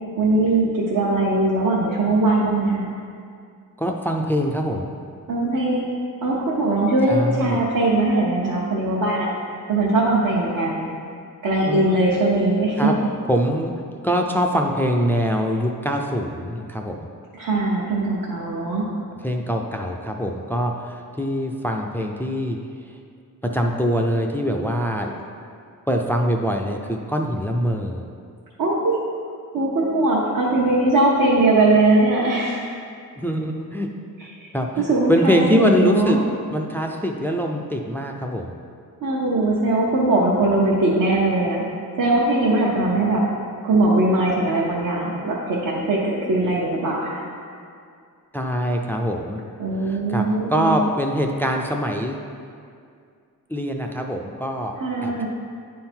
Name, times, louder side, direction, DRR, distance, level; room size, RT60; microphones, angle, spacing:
voice 1, 0.2-2.9 5.3-9.3 9.7-10.9 11.4-12.9 17.3-18.8 28.6-29.0 29.5-32.6 34.4-34.5 34.8-36.2 39.0-41.6 42.0-43.2 43.6-47.2 49.6-50.8 54.8-55.3, right 2 dB, 65° right, -5 dB, 1.0 m, -20 dB
voice 2, 3.8-4.9 7.1-7.6 11.7-12.0 12.8-13.7 14.0-17.1 19.2-22.6 23.4-25.2 25.9-28.0 33.2-33.9 34.5-36.2 36.5-38.5 48.3-49.4 49.8-52.2 53.5-54.8 55.0-55.3, equal, 5° left, 2 dB, 0.4 m, -23 dB
10.0 x 3.8 x 4.4 m, 2.3 s
cardioid pair, 110°, 36 cm